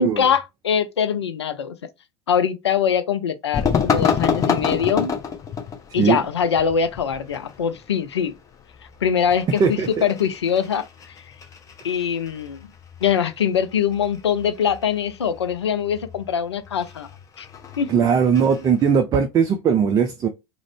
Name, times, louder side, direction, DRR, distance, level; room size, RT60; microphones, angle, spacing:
voice 1, 0.0-1.8 2.3-5.1 5.9-8.3 9.0-10.9 11.8-12.7 13.0-17.1 17.4-17.5 17.8-17.9, left 7 dB, 80° left, 0.4 m, -23 dB
sound 1, 3.5-18.9, left 6 dB, 25° left, 0.6 m, -29 dB
voice 2, 17.9-20.3, right 6 dB, 25° right, 0.4 m, -19 dB
2.4 x 2.1 x 3.3 m
figure-of-eight pair, 80°, 14 cm